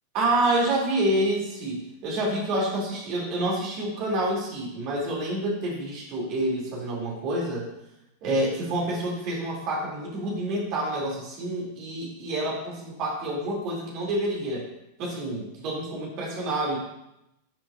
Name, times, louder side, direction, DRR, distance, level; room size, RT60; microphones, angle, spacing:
voice 1, 0.1-7.7 8.2-14.7 15.0-16.8, right 1 dB, 40° right, -3 dB, 2.7 m, -28 dB
11.0 x 6.0 x 2.5 m, 0.86 s
figure-of-eight pair, 90°, 0 cm